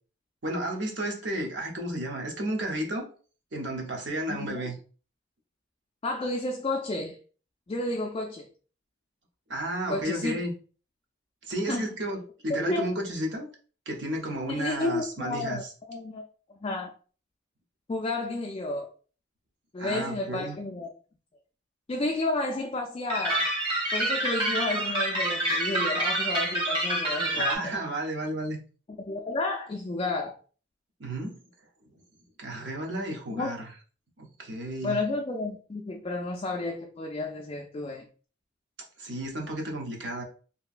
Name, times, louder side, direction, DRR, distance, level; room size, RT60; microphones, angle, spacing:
voice 1, 0.4-3.1 3.5-4.8 9.5-10.5 11.5-13.5 13.9-15.7 19.8-20.6 27.3-28.6 31.0-31.3 32.4-33.7 34.2-35.0 39.0-40.2, right 1 dB, 65° right, 0.7 m, -32 dB
voice 2, 4.3-4.6 6.0-7.2 7.7-8.5 9.9-10.4 11.7-11.9 12.5-12.9 14.5-15.6 15.9-16.2 16.6-16.9 17.9-18.9 19.7-20.9 21.9-23.5 23.9-27.7 29.1-30.4 33.3-33.5 34.8-38.1, left 2 dB, 30° left, 0.3 m, -31 dB
sound 1, 23.1-27.6, right 1 dB, 25° right, 1.0 m, -27 dB
2.9 x 2.6 x 2.4 m
head